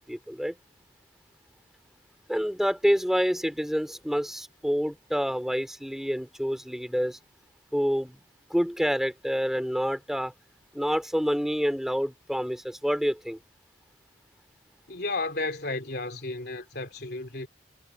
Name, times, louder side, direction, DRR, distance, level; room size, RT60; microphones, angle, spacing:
voice 1, 0.1-0.5 2.3-7.2 7.7-8.2 8.5-10.3 10.7-13.4, equal, ahead, 3.2 m, -27 dB
voice 2, 14.9-17.5, left 2 dB, 60° left, 3.2 m, -33 dB
head